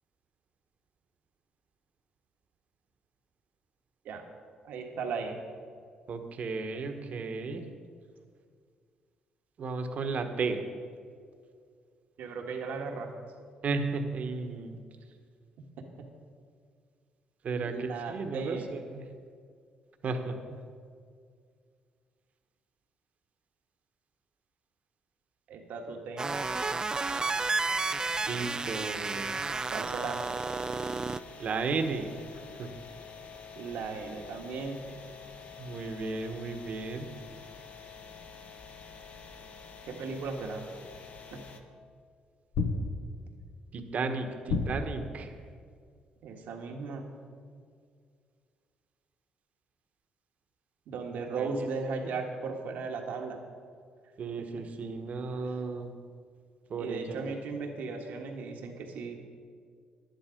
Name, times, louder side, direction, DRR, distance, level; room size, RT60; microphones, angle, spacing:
voice 1, 4.6-5.4 12.2-13.1 16.0-16.1 17.6-18.7 25.5-26.3 29.7-30.2 33.5-34.8 39.9-40.7 41.3-41.4 46.2-47.1 50.9-53.4 55.4-55.6 56.8-59.2, right 4 dB, 80° right, 2 dB, 1.6 m, -36 dB
voice 2, 6.1-7.6 9.6-10.6 13.6-14.8 17.4-19.0 20.0-20.6 28.2-29.3 31.4-32.1 32.6-32.7 35.6-37.1 43.7-45.3 51.3-51.7 54.2-55.9 56.7-57.3, right 4 dB, 55° right, 6 dB, 1.2 m, -34 dB
sound 1, 26.2-31.2, right 3 dB, 25° right, 0.3 m, -32 dB
sound 2, 26.3-41.6, left 5 dB, 55° left, 1.0 m, -48 dB
sound 3, 41.3-41.4 42.5-43.3 44.5-45.2, left 3 dB, 80° left, 1.0 m, -31 dB
11.0 x 10.5 x 5.1 m, 2.1 s
cardioid pair, 80°, 3 cm